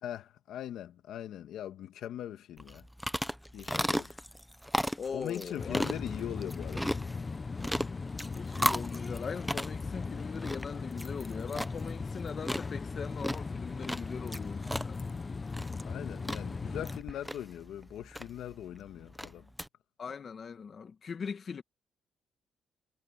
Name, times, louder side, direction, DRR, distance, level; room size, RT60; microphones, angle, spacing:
voice 1, 0.0-2.8 3.5-4.1 5.1-7.0 15.8-19.5, left 11 dB, 80° left, 1.7 m, -41 dB
sound 1, 2.6-19.7, equal, ahead, 0.9 m, -37 dB
voice 2, 3.7-4.2 5.0-5.9 8.3-15.0 20.0-21.6, left 6 dB, 45° left, 2.0 m, -40 dB
sound 2, 5.6-17.0, left 4 dB, 30° left, 0.8 m, -38 dB
cardioid pair, 90°, 0 cm